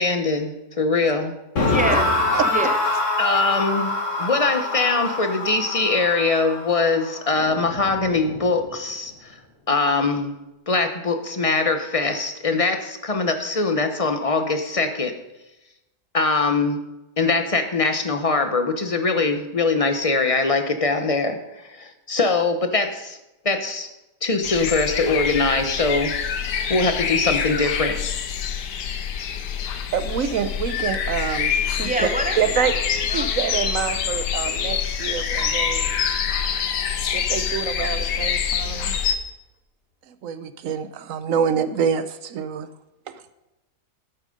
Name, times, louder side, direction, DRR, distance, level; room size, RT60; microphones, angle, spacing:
voice 1, 0.0-1.3 3.2-3.9 4.2-9.4 9.7-10.4 10.7-15.1 16.1-16.8 17.2-21.4 21.7-23.2 23.4-23.9 24.2-26.1 26.7-28.0, left 3 dB, 30° left, 7 dB, 0.6 m, -22 dB
sound 1, 1.6-8.7, left 2 dB, 45° left, 2.1 m, -25 dB
voice 2, 1.6-2.1 2.4-2.8 31.8-32.8 33.1-33.6 33.9-34.0, equal, 5° right, 4 dB, 0.8 m, -27 dB
sound 2, 24.4-39.2, left 8 dB, 85° left, 1.5 m, -25 dB
voice 3, 29.9-31.9 32.4-32.7 33.1-35.9 37.1-38.9 40.2-42.7 43.1-43.2, right 7 dB, 65° right, 12 dB, 0.9 m, -26 dB
Piano, 35.4-37.7 38.8-39.0, equal, 70° left, 3.9 m, -39 dB
11.0 x 8.7 x 5.2 m, 0.97 s
omnidirectional pair, 1.8 m